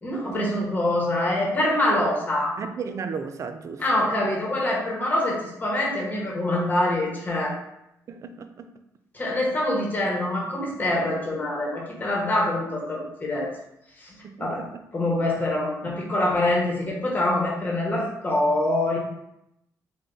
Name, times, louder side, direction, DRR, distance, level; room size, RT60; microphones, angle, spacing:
voice 1, 0.0-2.5 3.8-7.6 9.1-13.5 14.0-14.6 14.9-19.0, left 1 dB, 25° left, 1.1 m, -25 dB
voice 2, 2.6-4.2 8.1-8.7 14.2-14.8 15.4-15.5, right 5 dB, 50° right, 0.3 m, -35 dB
3.3 x 2.4 x 3.8 m
cardioid pair, 90°, 6 cm